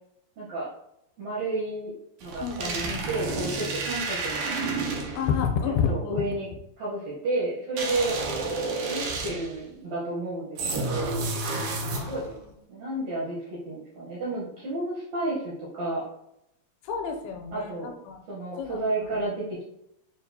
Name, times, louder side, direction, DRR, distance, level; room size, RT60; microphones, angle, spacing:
voice 1, 0.4-0.7 1.2-1.9 2.2-4.5 5.6-6.5 6.8-8.3 8.8-11.2 11.9-12.3 12.7-16.0 17.5-18.0 18.3-19.6, right 2 dB, 70° right, -7 dB, 1.7 m, -31 dB
sound 1, 2.2-5.3 7.8-9.6 10.6-12.3, right 3 dB, 90° right, 1.6 m, -30 dB
voice 2, 2.4-3.1 5.2-6.3 11.9-12.5 16.8-18.2 18.6-18.8, left 6 dB, 80° left, 4 dB, 2.4 m, -30 dB
6.7 x 2.3 x 2.7 m, 0.81 s
omnidirectional pair, 4.4 m